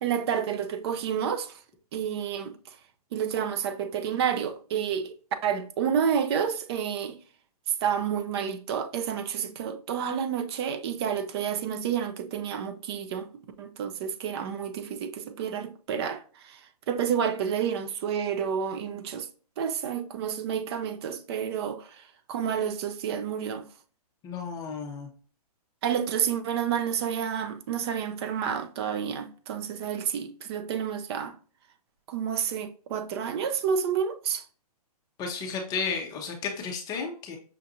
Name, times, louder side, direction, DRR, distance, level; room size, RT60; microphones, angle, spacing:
voice 1, 0.0-1.6 1.9-2.5 3.1-5.1 5.4-7.2 7.8-13.3 13.6-16.6 16.9-19.3 19.6-22.0 22.3-23.6 25.8-31.3 32.1-34.4, right 8 dB, 40° right, 0.6 m, -29 dB
voice 2, 24.2-25.1 35.2-37.4, left 5 dB, 20° left, 0.6 m, -33 dB
5.8 x 2.4 x 2.6 m
hypercardioid pair, 140°, 20 cm